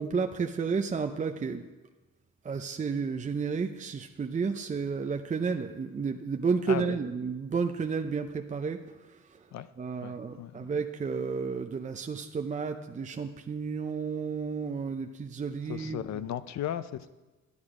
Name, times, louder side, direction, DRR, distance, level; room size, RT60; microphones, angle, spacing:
voice 1, 0.0-1.7 2.4-8.8 9.8-16.1, right 5 dB, 25° right, 0.6 m, -31 dB
voice 2, 6.7-7.0 9.5-9.7 10.0-10.7 15.7-17.1, left 11 dB, 65° left, 0.6 m, -36 dB
11.5 x 9.7 x 4.9 m
cardioid pair, 90°, 30 cm